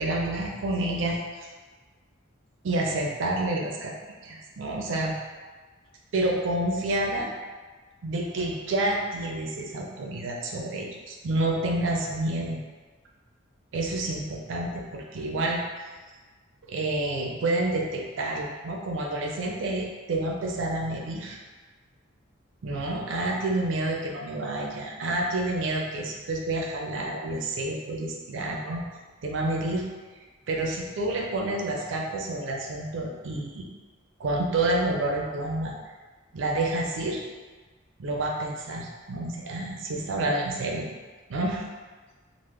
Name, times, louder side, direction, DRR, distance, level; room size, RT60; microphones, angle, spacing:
voice 1, 0.0-1.5 2.6-3.9 4.2-5.1 6.1-7.3 8.0-12.6 13.7-15.6 16.7-21.4 22.6-28.8 29.2-29.8 30.5-33.6 34.2-35.7 36.3-37.2 38.0-40.9 41.3-41.6, right 2 dB, 70° right, 0 dB, 0.4 m, -29 dB
3.5 x 2.0 x 3.1 m, 1.3 s
head